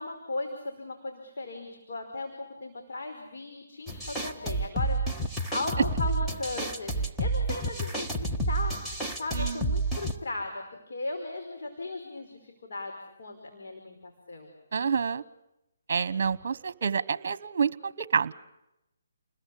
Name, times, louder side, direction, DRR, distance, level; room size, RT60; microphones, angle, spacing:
voice 1, 0.0-8.8 9.2-12.9 13.2-14.5 16.2-16.3, left 2 dB, 65° left, 2 dB, 4.9 m, -37 dB
sound 1, 3.9-10.1, right 2 dB, 5° left, 1.5 m, -30 dB
voice 2, 14.7-15.2 15.9-18.3, right 6 dB, 55° right, 18 dB, 1.1 m, -28 dB
29.5 x 21.0 x 8.5 m, 0.89 s
hypercardioid pair, 150°, 0 cm